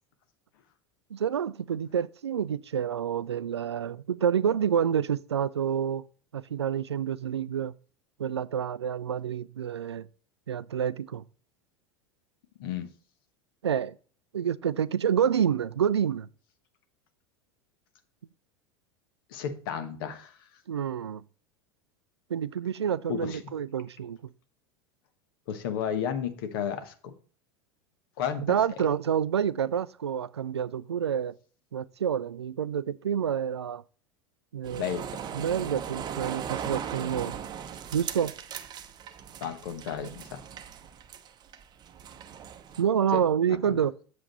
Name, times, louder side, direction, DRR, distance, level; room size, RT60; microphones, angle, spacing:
voice 1, 1.1-6.0 6.3-7.7 8.2-10.1 10.5-11.2 13.6-13.9 14.3-16.3 20.7-21.2 22.3-24.2 28.5-31.3 31.7-33.8 34.5-35.0 35.3-37.4 37.9-38.3 42.8-43.9, right 8 dB, 80° right, 0.4 m, -28 dB
voice 2, 19.3-20.4 23.1-23.4 25.5-27.1 28.2-28.6 34.7-35.2 39.4-40.4 43.1-43.2 43.7-43.8, left 8 dB, 60° left, 1.2 m, -33 dB
sound 1, 34.6-42.8, right 8 dB, 30° right, 0.7 m, -38 dB
7.8 x 6.5 x 4.1 m
figure-of-eight pair, 80°, 14 cm